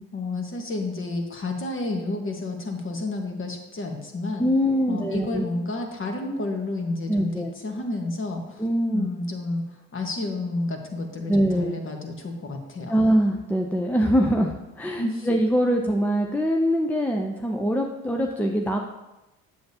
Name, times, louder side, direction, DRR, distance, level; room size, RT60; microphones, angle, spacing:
voice 1, 0.1-4.5 4.9-8.6 8.9-9.6 9.9-12.9 15.0-15.3, left 2 dB, 35° left, 3 dB, 1.4 m, -30 dB
voice 2, 4.4-5.4 7.1-7.5 8.6-9.1 11.3-11.8 12.9-18.8, equal, 5° left, 2 dB, 0.5 m, -23 dB
7.7 x 6.7 x 2.8 m, 1.0 s
supercardioid pair, 75°, 36 cm